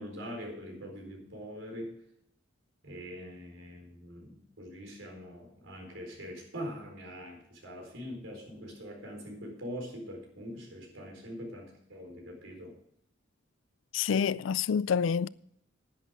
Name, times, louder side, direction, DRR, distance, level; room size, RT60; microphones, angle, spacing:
voice 1, 0.0-1.9 2.8-12.7, equal, 90° right, 4.2 m, -43 dB
voice 2, 13.9-15.3, left 7 dB, 80° left, 0.4 m, -27 dB
11.0 x 10.5 x 4.8 m
head